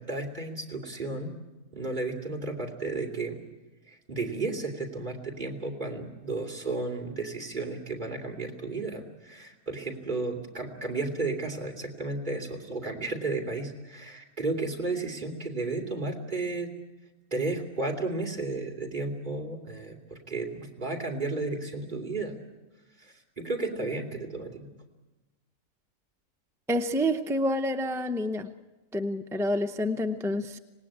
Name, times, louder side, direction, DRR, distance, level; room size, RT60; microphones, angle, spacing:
voice 1, 0.0-1.3 1.7-3.4 3.9-16.7 17.3-22.4 23.0-24.7, right 3 dB, 30° right, 2 dB, 2.9 m, -33 dB
voice 2, 26.7-28.5 28.9-30.6, equal, 5° right, 6 dB, 0.4 m, -28 dB
26.0 x 19.0 x 8.7 m, 1.1 s
omnidirectional pair, 1.5 m